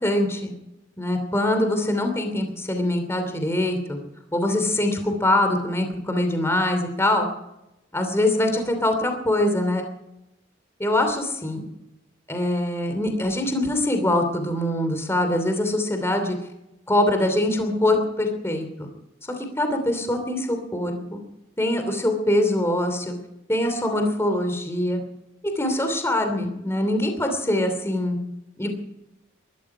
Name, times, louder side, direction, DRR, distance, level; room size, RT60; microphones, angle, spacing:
voice 1, 0.0-0.5 1.0-4.0 4.3-7.3 7.9-9.8 10.8-11.6 12.3-16.4 16.9-18.9 19.3-21.2 21.6-23.1 23.5-25.0 25.4-28.2 28.6-28.7, left 1 dB, 15° left, 5 dB, 2.8 m, -23 dB
22.0 x 13.0 x 4.9 m, 0.91 s
head